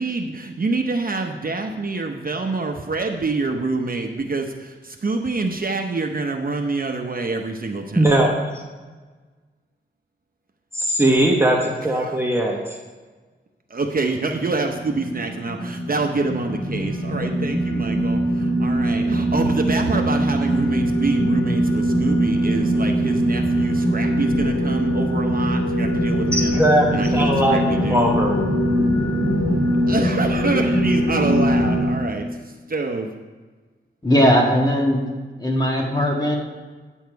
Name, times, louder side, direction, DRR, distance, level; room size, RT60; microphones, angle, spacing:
voice 1, 0.0-8.0 11.9-12.2 13.7-26.6 26.9-28.1 29.9-33.1, right 3 dB, 45° right, 3 dB, 0.7 m, -26 dB
voice 2, 8.0-8.3 10.7-12.8 26.3-28.4, right 1 dB, 10° right, -1 dB, 1.0 m, -19 dB
sound 1, 14.6-31.9, equal, 70° left, 2.3 m, -21 dB
voice 3, 34.0-35.0 35.4-36.4, equal, 20° left, -1 dB, 1.8 m, -18 dB
9.4 x 7.2 x 4.6 m, 1.4 s
wide cardioid pair, 95°, 21 cm